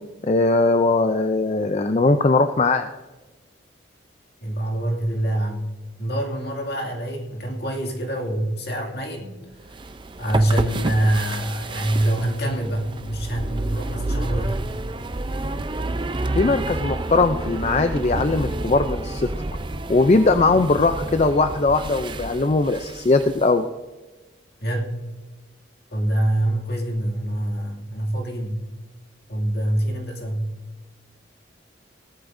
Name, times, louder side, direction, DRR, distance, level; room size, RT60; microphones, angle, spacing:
voice 1, 0.2-2.9 16.3-19.3 19.9-23.6, left 3 dB, 35° left, 8 dB, 0.4 m, -20 dB
voice 2, 4.4-5.7 6.0-9.4 10.2-14.6 24.6-25.0 25.9-28.6 29.3-30.5, right 1 dB, 55° left, 1 dB, 2.3 m, -25 dB
sound 1, 9.6-23.5, right 2 dB, 25° right, 0.5 m, -30 dB
18.0 x 13.0 x 2.6 m, 1.2 s
head